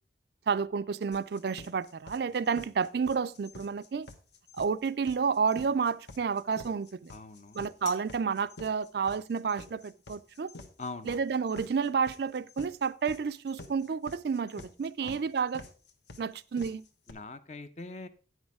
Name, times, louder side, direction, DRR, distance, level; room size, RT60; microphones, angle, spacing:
voice 1, 0.5-4.1 4.6-7.1 7.5-10.5 11.0-15.6 16.2-16.8, right 5 dB, 55° right, 0.4 m, -30 dB
sound 1, 1.1-17.1, left 3 dB, 70° left, 1.2 m, -48 dB
voice 2, 7.1-7.6 10.8-11.2 15.0-15.2 17.1-18.1, left 3 dB, 35° left, 0.6 m, -42 dB
9.3 x 6.3 x 4.8 m
head